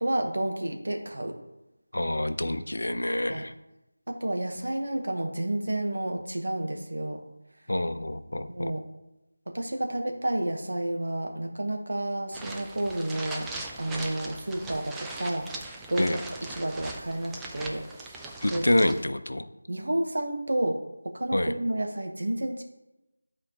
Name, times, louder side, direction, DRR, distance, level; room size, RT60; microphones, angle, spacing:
voice 1, 0.0-1.4 3.3-3.4 4.1-7.2 8.5-8.8 9.5-13.5 13.8-16.2 16.5-18.2 18.5-18.6 19.7-20.8 21.0-22.6, right 1 dB, 65° right, 3 dB, 1.1 m, -30 dB
voice 2, 1.9-3.5 7.7-8.7 16.0-16.2 18.4-19.5 21.3-21.5, left 1 dB, 75° left, 10 dB, 0.6 m, -27 dB
sound 1, 12.3-19.0, right 2 dB, 5° right, 0.3 m, -40 dB
9.7 x 4.4 x 2.9 m, 0.95 s
figure-of-eight pair, 170°, 0 cm